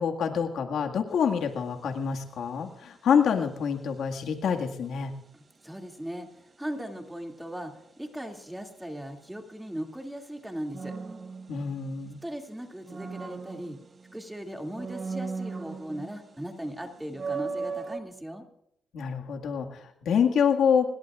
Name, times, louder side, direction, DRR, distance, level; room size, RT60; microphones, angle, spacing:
voice 1, 0.0-5.1 11.5-12.2 18.9-20.9, left 7 dB, 75° left, 4 dB, 1.9 m, -26 dB
sound 1, 1.1-1.4 10.7-12.2 12.6-14.2 14.7-16.3 16.6-16.7 17.1-18.0, right 4 dB, 35° right, 1.3 m, -36 dB
voice 2, 5.3-6.3 6.6-7.7 8.0-10.9 12.2-13.8 14.1-18.4, equal, 5° right, 3 dB, 2.5 m, -38 dB
25.5 x 21.0 x 2.5 m, 0.77 s
cardioid pair, 90°, 0 cm